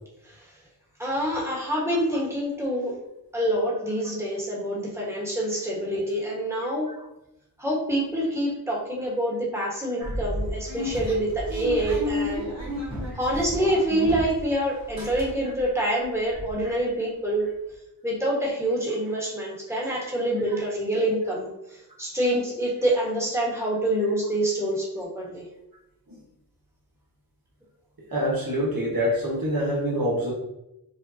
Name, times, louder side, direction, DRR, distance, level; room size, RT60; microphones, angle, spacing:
voice 1, 1.0-2.9 3.3-6.9 7.6-12.5 13.1-17.5 18.0-21.5 22.0-25.4, right 1 dB, 5° right, -5 dB, 1.4 m, -26 dB
sound 1, 10.0-14.5 14.8-15.6 16.0-16.1 16.3-16.5, left 1 dB, 45° right, 1.3 m, -32 dB
voice 2, 28.1-30.3, equal, 65° right, -5 dB, 1.4 m, -25 dB
5.1 x 2.5 x 2.8 m, 0.87 s
cardioid pair, 50°, 38 cm